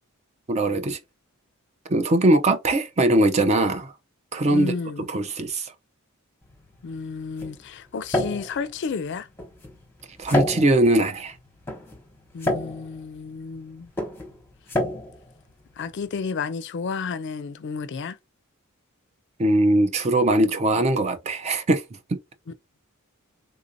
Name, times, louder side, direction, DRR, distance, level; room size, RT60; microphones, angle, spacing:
voice 1, 0.5-1.0 1.9-3.9 4.3-4.7 5.1-5.7 10.2-11.3 19.4-21.8, right 1 dB, 30° right, 0.5 m, -21 dB
voice 2, 4.5-5.1 6.8-9.3 12.3-13.9 15.8-18.2 22.5-22.6, left 5 dB, 55° left, 0.4 m, -31 dB
sound 1, 6.4-16.2, left 1 dB, 10° left, 1.0 m, -31 dB
3.6 x 2.6 x 2.6 m
head